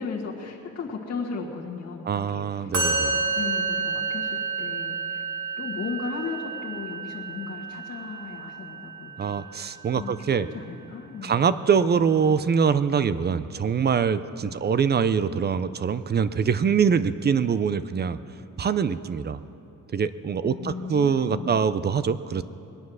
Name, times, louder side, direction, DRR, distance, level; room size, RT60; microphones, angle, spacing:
voice 1, 0.0-2.7 3.0-5.2 5.6-9.4 9.9-11.6 14.4-14.6 20.4-21.6, left 5 dB, 55° left, -3 dB, 1.6 m, -36 dB
voice 2, 2.1-3.1 9.2-10.5 11.2-18.2 18.6-19.4 19.9-22.4, right 6 dB, 35° right, 14 dB, 0.4 m, -24 dB
Musical instrument, 2.7-10.0, right 4 dB, 85° right, 3.0 m, -30 dB
21.5 x 9.5 x 6.2 m, 2.7 s
wide cardioid pair, 165°, 31 cm